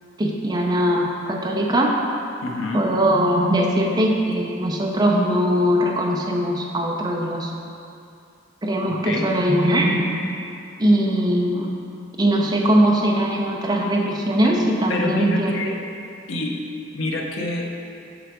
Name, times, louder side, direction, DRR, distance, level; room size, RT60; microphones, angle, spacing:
voice 1, 0.2-1.9 2.7-7.5 8.6-10.1 10.8-11.7 12.2-15.5, equal, 20° right, -1 dB, 0.5 m, -20 dB
voice 2, 2.4-2.9 8.9-9.3 14.4-14.6 14.9-15.8 16.3-16.6 16.9-17.7, left 2 dB, 85° left, 0 dB, 0.8 m, -27 dB
6.6 x 5.8 x 3.6 m, 2.5 s
head